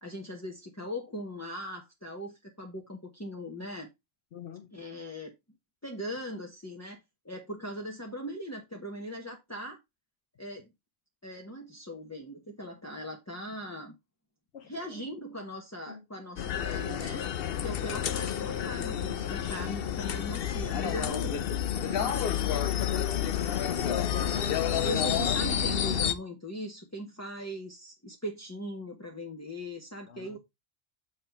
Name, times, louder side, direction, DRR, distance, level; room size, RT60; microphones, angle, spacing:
voice 1, 0.0-3.9 4.7-5.3 5.8-9.8 10.4-10.7 11.2-13.9 14.6-17.2 17.6-21.6 21.8-22.4 24.8-30.4, equal, 15° left, 1.1 m, -40 dB
voice 2, 4.3-4.7 14.5-15.0 15.9-16.0 22.3-25.3 30.1-30.4, left 9 dB, 85° left, 1.2 m, -41 dB
sound 1, 16.4-26.1, left 9 dB, 65° left, 0.8 m, -30 dB
7.8 x 3.2 x 5.8 m
omnidirectional pair, 1.1 m